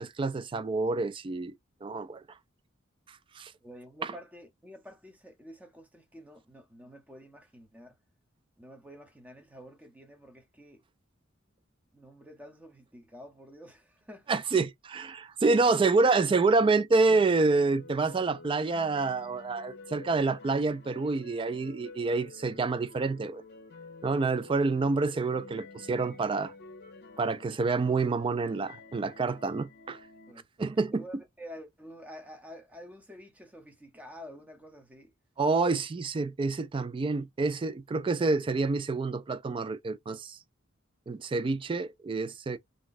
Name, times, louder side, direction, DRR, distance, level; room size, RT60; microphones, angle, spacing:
voice 1, 0.0-1.5 1.8-2.2 3.4-3.5 14.3-23.4 24.0-26.5 27.2-30.0 30.6-31.0 35.4-40.4 41.1-42.6, right 3 dB, 25° right, 0.3 m, -27 dB
voice 2, 3.6-8.0 8.6-10.8 11.9-14.4 30.3-35.1, equal, 5° right, 0.8 m, -49 dB
sound 1, 17.1-30.3, left 3 dB, 55° left, 0.6 m, -49 dB
2.6 x 2.2 x 3.9 m
head